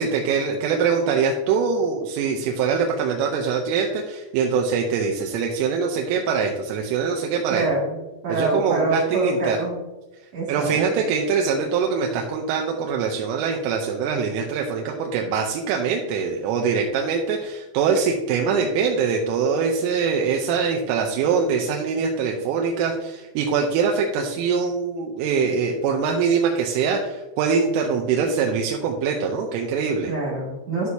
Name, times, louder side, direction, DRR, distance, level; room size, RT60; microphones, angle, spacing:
voice 1, 0.0-7.7 8.3-9.6 10.5-30.1, right 5 dB, 85° right, 1 dB, 3.3 m, -23 dB
voice 2, 7.5-8.0 8.2-9.8 10.3-10.8 30.1-30.9, right 2 dB, 45° right, -5 dB, 2.6 m, -25 dB
11.0 x 6.2 x 2.8 m, 1.1 s
omnidirectional pair, 5.8 m